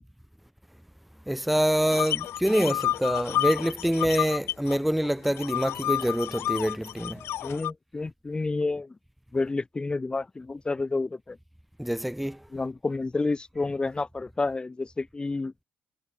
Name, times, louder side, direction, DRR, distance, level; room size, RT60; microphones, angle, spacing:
voice 1, 1.3-7.4 11.8-12.5, equal, ahead, 0.7 m, -26 dB
sound 1, 1.9-4.8 5.0-7.7, left 12 dB, 70° left, 1.0 m, -30 dB
voice 2, 7.4-8.9 9.3-11.4 12.5-15.5, left 3 dB, 20° left, 1.3 m, -30 dB
supercardioid pair, 80°, 4 cm